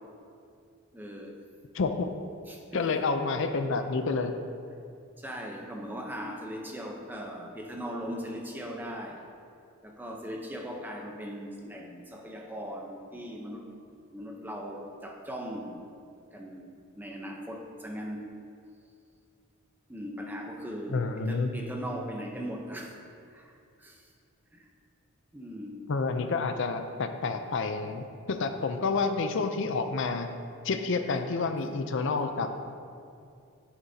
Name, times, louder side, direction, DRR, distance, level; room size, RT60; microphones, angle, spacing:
voice 1, 0.9-1.3 2.5-3.0 5.2-9.2 9.8-13.7 14.1-15.9 16.3-18.3 19.9-23.0 23.2-24.1 24.5-24.7 25.3-25.8 32.1-32.2, equal, 10° right, 0 dB, 0.7 m, -39 dB
voice 2, 1.7-2.1 2.7-4.3 20.9-21.5 25.9-30.3 30.6-32.7, left 4 dB, 55° left, 7 dB, 0.5 m, -29 dB
11.0 x 8.8 x 2.8 m, 2.4 s
head